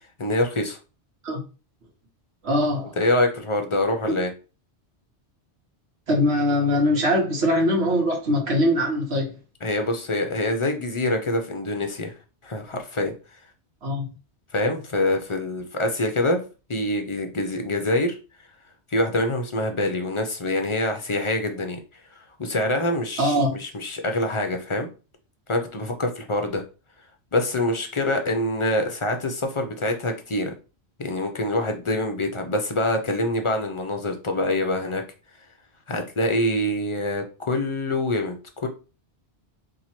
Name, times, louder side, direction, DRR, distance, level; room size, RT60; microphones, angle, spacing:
voice 1, 0.2-0.8 3.0-4.3 9.6-12.1 12.4-13.1 14.5-16.4 16.7-18.2 18.9-21.8 22.4-24.9 25.5-26.6 27.3-30.5 31.0-35.0 35.9-38.7, left 1 dB, 40° left, 0.4 m, -25 dB
voice 2, 2.4-2.9 4.1-4.2 6.1-9.3 13.8-14.1 23.2-23.5, left 1 dB, 70° right, 1.3 m, -22 dB
2.9 x 2.6 x 4.2 m
omnidirectional pair, 1.1 m